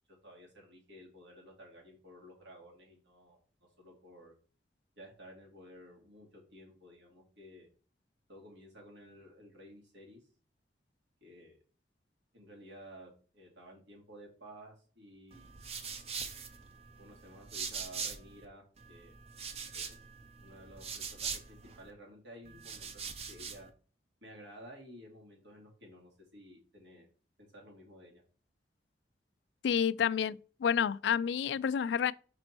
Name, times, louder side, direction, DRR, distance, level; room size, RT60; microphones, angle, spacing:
voice 1, 0.1-3.4 3.8-4.3 5.0-7.7 8.3-10.3 11.2-11.6 12.3-15.6 17.0-19.1 19.7-20.0 20.4-23.7 24.2-27.1 27.4-28.2, equal, 85° right, 2.6 m, -54 dB
sound 1, 15.3-18.4 18.8-21.9 22.4-23.7, right 6 dB, 35° right, 0.6 m, -42 dB
voice 2, 29.6-32.1, left 7 dB, 80° left, 0.3 m, -29 dB
5.3 x 4.2 x 4.4 m
head